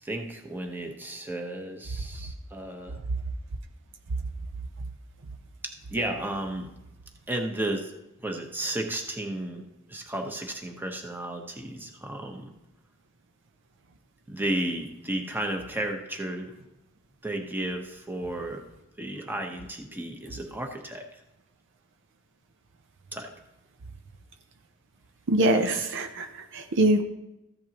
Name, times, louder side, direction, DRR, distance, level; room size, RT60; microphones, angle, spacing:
voice 1, 0.0-3.0 5.6-6.7 7.3-7.9 8.2-9.6 9.9-12.5 14.3-16.5 17.2-18.6 19.0-21.0 23.1-23.3 25.5-25.8, right 1 dB, 10° right, 3 dB, 1.1 m, -33 dB
voice 2, 25.3-27.0, right 1 dB, 55° right, 6 dB, 0.7 m, -23 dB
14.5 x 10.5 x 3.0 m, 0.92 s
head